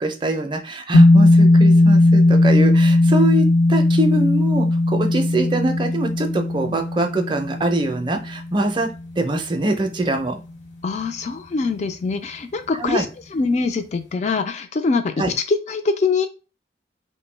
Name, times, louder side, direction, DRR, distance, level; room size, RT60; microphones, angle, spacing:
voice 1, 0.0-8.9 9.2-10.4 12.8-13.1 15.2-15.3, right 1 dB, 25° right, 4 dB, 0.4 m, -23 dB
sound 1, 0.9-9.4, left 2 dB, 90° left, 0.6 m, -16 dB
voice 2, 10.8-13.1 13.3-15.1 15.5-16.3, left 4 dB, 40° left, 9 dB, 0.3 m, -23 dB
2.2 x 2.1 x 3.2 m, 0.32 s
head